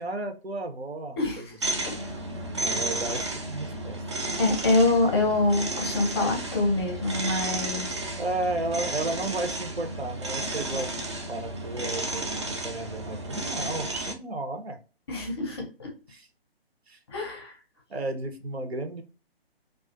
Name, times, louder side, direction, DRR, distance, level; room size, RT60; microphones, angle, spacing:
voice 1, 0.0-1.5 1.7-1.8 2.6-4.0 8.2-10.9 11.3-14.8 16.1-16.3 16.9-17.0 17.9-19.0, right 2 dB, 85° right, 5 dB, 0.7 m, -33 dB
sound 1, 1.6-14.1, right 2 dB, 30° right, 0.4 m, -32 dB
voice 2, 4.4-7.9 15.1-15.9 17.1-17.5, left 2 dB, 25° left, 2 dB, 0.6 m, -25 dB
2.4 x 2.4 x 2.3 m, 0.33 s
figure-of-eight pair, 135°, 31 cm